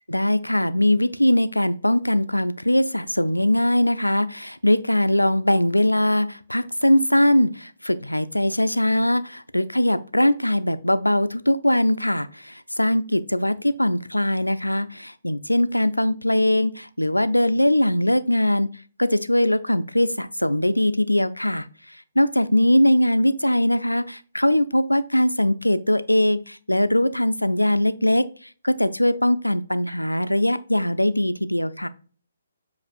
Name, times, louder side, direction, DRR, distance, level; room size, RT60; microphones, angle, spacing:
voice 1, 0.1-18.7 19.0-21.7 22.2-28.3 28.6-31.9, left 1 dB, 90° left, 12 dB, 0.3 m, -21 dB
7.3 x 2.4 x 2.4 m, 0.40 s
figure-of-eight pair, 135°, 0 cm